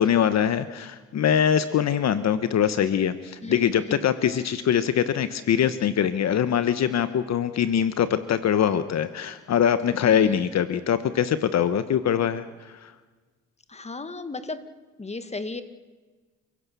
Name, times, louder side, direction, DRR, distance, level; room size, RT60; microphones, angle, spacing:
voice 1, 0.0-12.9, left 9 dB, 60° left, 12 dB, 1.2 m, -23 dB
voice 2, 3.4-4.1 10.0-10.5 13.7-14.6 15.0-15.6, left 3 dB, 20° left, 11 dB, 2.0 m, -35 dB
29.5 x 16.5 x 7.0 m, 1.3 s
cardioid pair, 90°, 30 cm